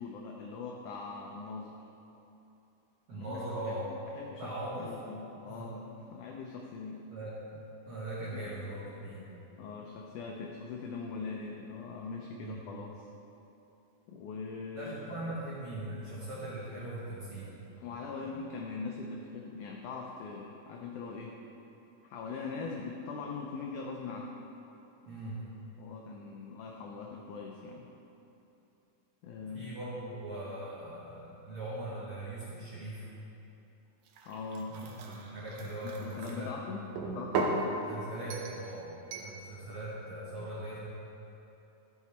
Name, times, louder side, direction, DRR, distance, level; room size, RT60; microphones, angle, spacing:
voice 1, 0.0-1.8 3.1-3.4 3.8-7.0 8.3-8.5 9.6-13.1 14.1-15.1 17.8-21.4 22.0-24.3 25.8-27.9 29.2-29.7 34.2-34.7 35.1-35.2 36.0-36.9 37.1-37.7, left 4 dB, 85° left, 0 dB, 1.7 m, -41 dB
voice 2, 3.1-3.8 4.4-4.9 5.4-5.6 7.1-7.4 7.9-9.2 12.4-12.7 14.7-17.6 18.1-18.4 25.0-25.5 29.5-33.1 34.7-36.5 37.9-40.8, right 1 dB, 55° right, -8 dB, 1.7 m, -40 dB
sound 1, 34.1-36.3 37.0-37.6 38.3-38.6 39.1-39.3, right 4 dB, 85° right, 1.5 m, -36 dB
12.5 x 5.9 x 4.3 m, 3.0 s
omnidirectional pair, 4.3 m